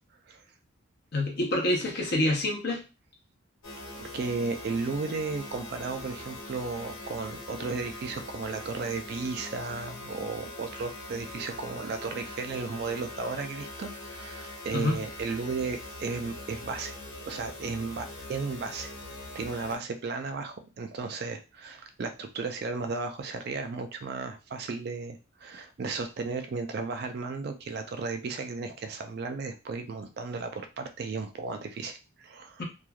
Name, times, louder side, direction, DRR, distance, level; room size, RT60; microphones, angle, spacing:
voice 1, 1.1-2.8 14.7-15.0 32.6-32.7, left 1 dB, 50° left, 1 dB, 0.7 m, -27 dB
sound 1, 3.6-19.8, left 2 dB, 90° left, 1.4 m, -42 dB
voice 2, 3.9-16.9 17.3-18.9 19.3-32.6, right 4 dB, 50° right, 6 dB, 0.3 m, -34 dB
3.0 x 2.3 x 2.3 m, 0.31 s
head